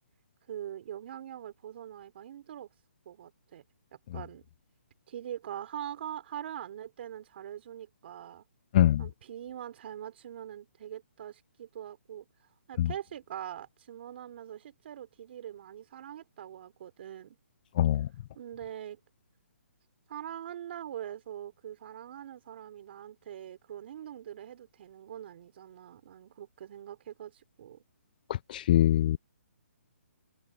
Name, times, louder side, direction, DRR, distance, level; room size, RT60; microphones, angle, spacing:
voice 1, 0.5-2.7 3.0-3.6 3.9-4.5 5.1-8.4 9.0-12.3 12.7-17.4 18.3-19.0 20.1-27.8, right 10 dB, 45° right, 3.4 m, -43 dB
voice 2, 8.7-9.0 12.8-12.9 17.8-18.1 28.5-29.2, left 12 dB, 35° left, 0.4 m, -23 dB
hypercardioid pair, 150°, 8 cm